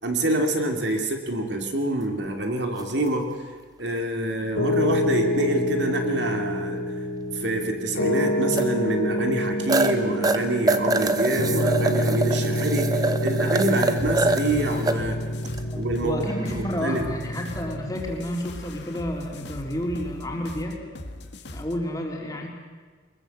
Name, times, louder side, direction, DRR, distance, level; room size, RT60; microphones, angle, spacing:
voice 1, 0.0-3.5 3.8-6.9 7.3-15.2 15.8-16.2 16.5-17.1, right 1 dB, 60° right, 4 dB, 2.7 m, -26 dB
sound 1, 2.8-2.9 5.4-5.5 8.5-8.7 9.1-9.2 9.7-9.9 10.2-14.9 15.4-15.6 16.2-16.7 20.2-20.4, right 2 dB, 20° right, 1.1 m, -25 dB
Piano, 4.6-17.9, left 1 dB, 80° left, 3.3 m, -27 dB
sound 2, 14.0-21.9, left 1 dB, 60° left, 1.9 m, -40 dB
voice 2, 15.6-20.8 21.5-22.5, left 1 dB, 20° left, 0 dB, 3.6 m, -30 dB
23.0 x 21.0 x 8.1 m, 1.5 s
head